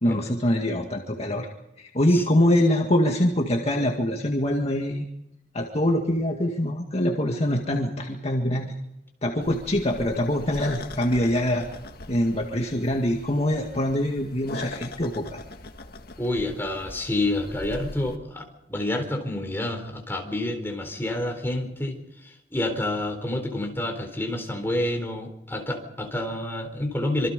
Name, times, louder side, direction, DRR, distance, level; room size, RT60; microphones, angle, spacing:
voice 1, 0.0-1.5 1.8-5.1 5.5-8.7 9.2-11.7 12.1-15.4, left 1 dB, 35° left, 1 dB, 1.9 m, -24 dB
sound 1, 9.4-18.2, left 2 dB, 60° left, 1.8 m, -41 dB
voice 2, 16.2-27.3, left 1 dB, 15° left, 3 dB, 3.9 m, -28 dB
26.0 x 24.5 x 5.3 m, 0.86 s
head